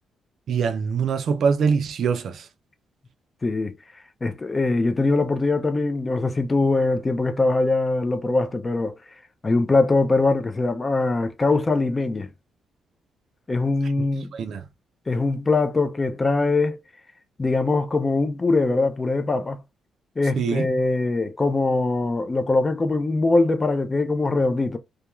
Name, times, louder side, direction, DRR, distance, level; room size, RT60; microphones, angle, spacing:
voice 1, 0.5-2.5 14.3-14.6 20.4-20.7, right 6 dB, 55° right, 0.3 m, -23 dB
voice 2, 3.4-3.8 4.2-8.9 9.4-12.3 13.5-14.3 15.1-16.8 17.4-19.6 20.2-24.8, left 3 dB, 20° left, 0.3 m, -22 dB
2.3 x 2.2 x 3.0 m
cardioid pair, 150°, 0 cm